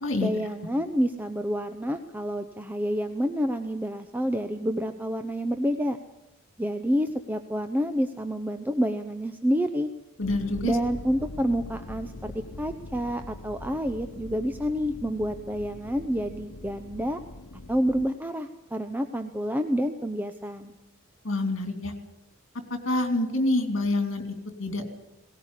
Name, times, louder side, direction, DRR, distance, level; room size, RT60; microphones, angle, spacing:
voice 1, 0.2-6.0 6.6-9.9 10.6-17.2 17.7-20.7, equal, 10° right, 7 dB, 0.7 m, -28 dB
sound 1, 10.2-18.1, left 2 dB, 85° left, 1.0 m, -42 dB
voice 2, 10.2-10.8 21.2-21.9 22.7-24.9, left 2 dB, 60° left, 6 dB, 3.1 m, -27 dB
18.5 x 18.0 x 8.3 m, 0.93 s
head